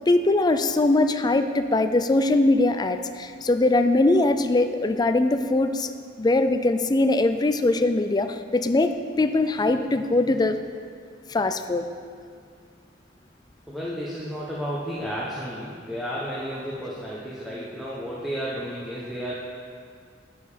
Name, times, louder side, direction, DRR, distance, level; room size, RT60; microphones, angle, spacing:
voice 1, 0.0-5.9 6.2-10.6 11.3-11.9, left 2 dB, 20° left, 9 dB, 0.4 m, -21 dB
voice 2, 13.7-19.3, equal, ahead, -8 dB, 1.0 m, -32 dB
11.5 x 5.5 x 5.0 m, 2.2 s
head